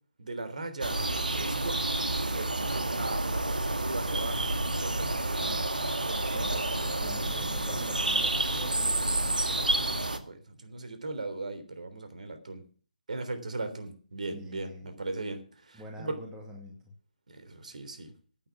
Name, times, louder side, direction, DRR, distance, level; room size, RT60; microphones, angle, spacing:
voice 1, 0.2-1.0 1.4-1.8 2.2-5.5 6.0-6.5 9.4-12.6 13.1-16.2 17.3-18.1, right 2 dB, 60° right, 8 dB, 3.4 m, -39 dB
sound 1, 0.8-10.2, right 2 dB, 80° right, 1.9 m, -29 dB
voice 2, 6.3-9.4 14.3-14.9 15.7-16.9, equal, 10° right, 0 dB, 2.3 m, -46 dB
11.5 x 9.3 x 7.2 m, 0.42 s
figure-of-eight pair, 150°, 4 cm